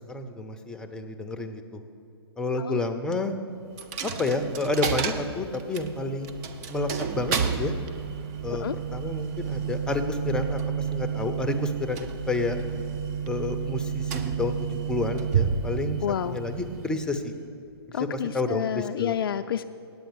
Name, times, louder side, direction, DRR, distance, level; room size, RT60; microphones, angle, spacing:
voice 1, 0.0-1.8 2.4-3.3 4.0-7.7 8.4-8.6 8.9-10.6 10.9-12.6 13.2-17.3 17.9-18.0 18.3-19.2, left 2 dB, 5° left, 6 dB, 0.6 m, -30 dB
Coin (dropping), 3.8-17.5, right 7 dB, 40° right, 0.8 m, -31 dB
voice 2, 16.0-16.4 17.9-19.6, left 9 dB, 60° left, 6 dB, 0.4 m, -29 dB
9.2 x 8.7 x 8.8 m, 2.5 s
hypercardioid pair, 135°, 14 cm